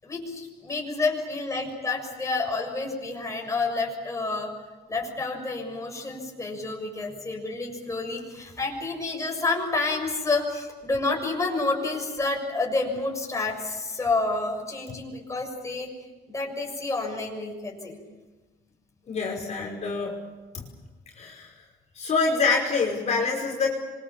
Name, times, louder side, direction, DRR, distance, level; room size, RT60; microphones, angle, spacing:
voice 1, 0.0-4.5 4.9-15.9 16.3-18.0, left 3 dB, 20° left, 0 dB, 7.1 m, -29 dB
voice 2, 19.1-20.2 20.5-20.7 21.1-21.5 22.0-23.8, left 4 dB, 40° left, -2 dB, 5.4 m, -26 dB
27.0 x 24.5 x 7.4 m, 1.2 s
cardioid pair, 110°, 17 cm